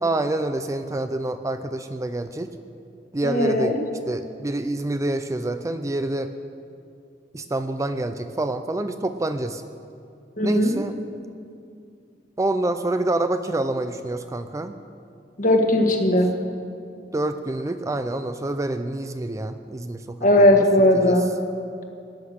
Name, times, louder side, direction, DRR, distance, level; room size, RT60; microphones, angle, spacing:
voice 1, 0.0-2.5 3.1-3.8 4.1-6.3 7.3-9.6 10.4-10.9 12.4-14.8 17.1-20.6 20.9-21.2, right 2 dB, 20° right, 9 dB, 0.4 m, -27 dB
voice 2, 3.2-3.7 10.4-10.7 15.4-16.3 20.2-21.2, left 1 dB, 50° left, 3 dB, 1.6 m, -18 dB
16.5 x 9.6 x 6.5 m, 2.5 s
head